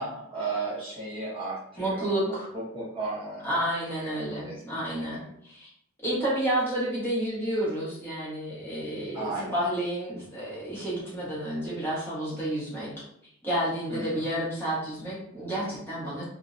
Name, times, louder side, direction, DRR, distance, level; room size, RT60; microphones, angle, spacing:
voice 1, 0.0-3.6 4.0-5.2 9.1-9.6 13.9-14.2, right 3 dB, 25° right, -8 dB, 0.6 m, -35 dB
voice 2, 1.8-2.5 3.4-5.7 6.0-12.9 13.4-16.2, right 1 dB, 10° left, -9 dB, 0.9 m, -30 dB
2.5 x 2.0 x 2.4 m, 0.72 s
head